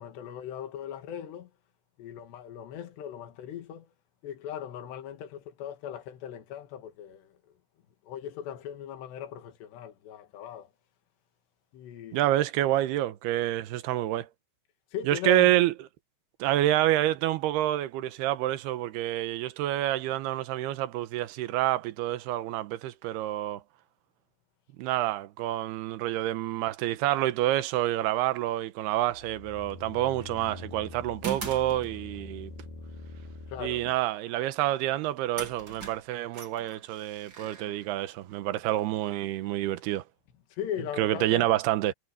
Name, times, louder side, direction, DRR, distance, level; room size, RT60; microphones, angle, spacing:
voice 1, 0.0-1.5 2.0-3.9 4.2-7.4 8.1-10.7 11.7-12.2 14.9-15.5 33.5-34.0 37.4-37.8 40.5-41.5, left 10 dB, 80° left, 4.1 m, -39 dB
voice 2, 12.1-14.3 15.1-15.7 16.4-23.6 24.8-32.5 33.6-40.0 41.0-41.9, right 14 dB, 75° right, 2.9 m, -28 dB
sound 1, 28.9-34.0, left 3 dB, 60° left, 3.6 m, -44 dB
sound 2, 30.2-30.5 31.2-32.4 34.8-34.9 35.4-38.4, right 6 dB, 30° right, 3.2 m, -41 dB
omnidirectional pair, 4.9 m